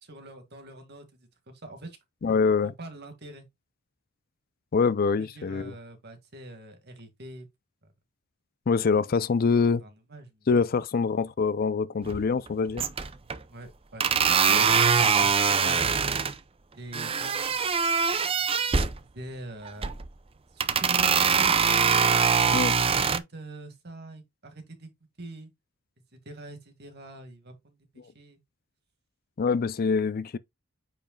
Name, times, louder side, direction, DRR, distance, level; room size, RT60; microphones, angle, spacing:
voice 1, 0.0-2.0 2.3-2.4 2.6-3.5 5.2-7.5 9.6-10.5 13.5-14.1 14.6-14.7 15.0-16.0 16.8-17.5 19.0-19.9 20.5-21.6 22.4-24.9 25.2-25.5 26.1-28.4, right 1 dB, 50° right, 2.0 m, -43 dB
voice 2, 2.2-2.7 4.7-5.7 8.7-9.8 10.5-12.8 14.5-14.6 22.5-22.7 29.4-30.4, left 5 dB, 45° left, 0.4 m, -25 dB
sound 1, 12.1-12.5 12.8-13.4 14.0-16.3 16.9-19.0 19.7-20.1 20.6-23.2, right 6 dB, 25° right, 0.5 m, -23 dB
8.7 x 5.1 x 2.3 m
head